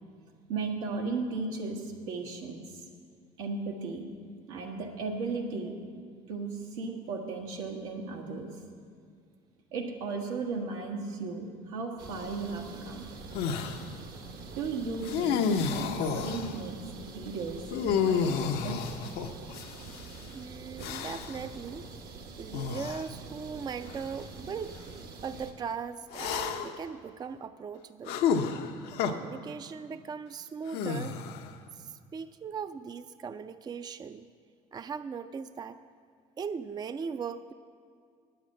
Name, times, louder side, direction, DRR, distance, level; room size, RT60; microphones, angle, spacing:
voice 1, 0.5-2.8 3.4-4.1 4.5-5.7 6.3-8.5 9.7-13.0 14.6-16.7 17.0-18.9, right 4 dB, 90° right, 1 dB, 1.4 m, -36 dB
sound 1, 12.0-25.5, right 4 dB, 65° right, 1.2 m, -45 dB
sound 2, 13.3-13.8 15.0-16.6 17.7-20.0 20.8-21.4 22.5-23.0 23.9-24.0 26.1-26.8 28.1-29.1 30.7-31.5, left 6 dB, 75° left, 0.7 m, -30 dB
voice 2, 20.3-21.9 22.4-24.8 25.2-28.2 29.0-31.2 31.8-34.3 34.7-35.8 36.4-37.5, right 6 dB, 25° right, 12 dB, 0.4 m, -39 dB
9.6 x 8.0 x 7.6 m, 2.1 s
supercardioid pair, 80°, 17 cm